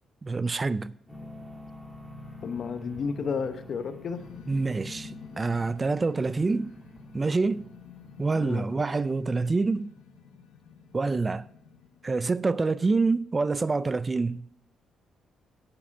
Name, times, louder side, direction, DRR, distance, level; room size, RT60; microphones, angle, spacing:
voice 1, 0.2-0.9 4.5-6.7 7.1-7.7 8.2-9.9 10.9-11.5 12.0-14.5, right 3 dB, 25° right, 0.3 m, -26 dB
sound 1, 1.1-9.3, left 1 dB, ahead, 2.3 m, -46 dB
voice 2, 2.4-4.2 8.3-8.7, left 5 dB, 55° left, 0.9 m, -32 dB
sound 2, 4.1-12.6, left 7 dB, 90° left, 1.0 m, -51 dB
8.8 x 8.0 x 5.7 m
cardioid pair, 90°, 0 cm